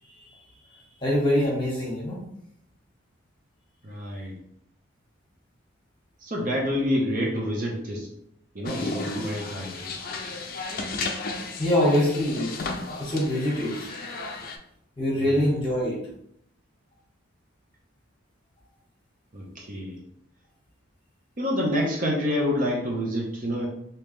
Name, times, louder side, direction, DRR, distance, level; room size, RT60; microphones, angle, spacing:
voice 1, 1.0-2.2 11.6-12.5 13.0-13.9 15.0-16.0, left 1 dB, 25° left, -4 dB, 1.3 m, -24 dB
voice 2, 3.8-4.3 6.2-8.1 8.5-9.9 15.2-15.4 19.3-20.0 21.4-23.7, equal, 40° right, -1 dB, 0.6 m, -28 dB
sound 1, 8.7-14.6, left 3 dB, 45° left, 0.4 m, -34 dB
3.5 x 2.8 x 3.2 m, 0.72 s
head